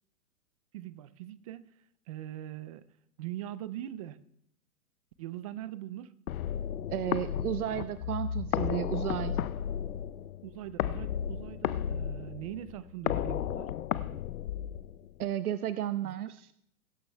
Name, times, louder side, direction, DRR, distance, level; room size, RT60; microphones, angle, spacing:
voice 1, 0.7-1.7 2.1-2.9 3.2-4.2 5.2-6.1 10.4-13.7 16.0-16.2, right 13 dB, 30° right, 17 dB, 0.3 m, -41 dB
sound 1, 6.3-15.2, left 10 dB, 80° left, 0.7 m, -34 dB
voice 2, 6.9-9.4 15.2-16.5, right 11 dB, 90° right, 14 dB, 0.6 m, -33 dB
23.0 x 12.0 x 2.2 m, 0.74 s
hypercardioid pair, 125°, 43 cm